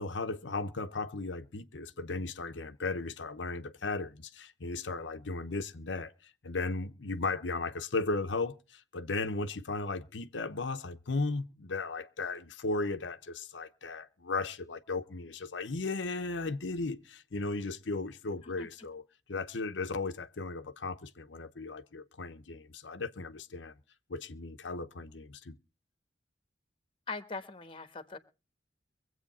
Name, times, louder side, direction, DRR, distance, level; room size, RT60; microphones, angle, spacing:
voice 1, 0.0-19.0 19.3-23.8 24.1-25.6, left 3 dB, 85° left, 0.9 m, -36 dB
voice 2, 27.1-28.2, left 3 dB, 30° left, 1.2 m, -41 dB
23.5 x 8.2 x 4.1 m
head